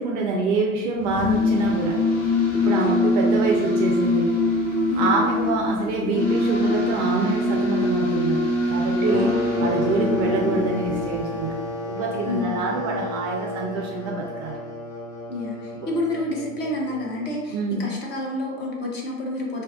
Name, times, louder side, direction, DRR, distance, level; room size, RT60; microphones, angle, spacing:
voice 1, 0.0-2.0 2.5-4.3 5.0-8.4 8.7-9.3 9.6-11.6 11.8-14.6 15.7-15.9 17.5-17.9, right 3 dB, 35° right, 0 dB, 0.4 m, -25 dB
sound 1, 1.0-11.4, left 2 dB, 40° left, 1.4 m, -23 dB
voice 2, 4.9-5.2 9.1-9.6 12.2-12.7 15.3-19.6, left 2 dB, 25° left, -1 dB, 0.6 m, -29 dB
sound 2, 9.1-17.4, left 1 dB, 80° left, 1.0 m, -32 dB
2.6 x 2.3 x 3.4 m, 1.3 s
hypercardioid pair, 95°, 41 cm